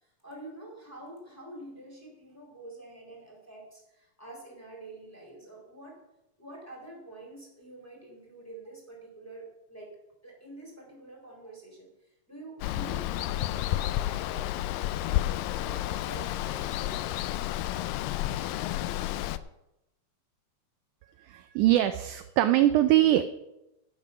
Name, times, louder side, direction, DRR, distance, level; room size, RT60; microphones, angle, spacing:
voice 1, 0.0-6.0 6.4-9.9 10.2-15.3 15.5-17.4, right 2 dB, 5° left, -2 dB, 3.7 m, -47 dB
Water, 12.6-19.4, left 14 dB, 85° left, 2.2 m, -31 dB
voice 2, 21.2-23.2, right 14 dB, 80° right, 10 dB, 1.8 m, -22 dB
11.5 x 10.0 x 5.7 m, 0.89 s
omnidirectional pair, 4.0 m